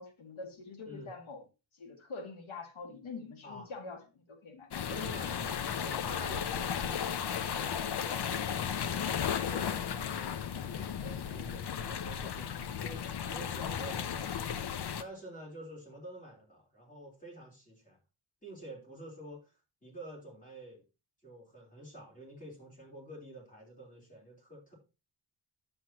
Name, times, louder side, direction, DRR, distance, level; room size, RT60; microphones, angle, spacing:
voice 1, 0.0-1.4 1.7-4.8, left 4 dB, 85° left, 2.0 m, -45 dB
sound 1, 4.7-15.0, left 8 dB, 55° left, 0.7 m, -35 dB
voice 2, 4.9-8.6 8.8-14.5 15.0-18.0 18.4-19.5 19.8-20.8 21.2-24.7, right 1 dB, 15° left, 3.7 m, -48 dB
9.3 x 7.7 x 2.9 m
wide cardioid pair, 175°, 47 cm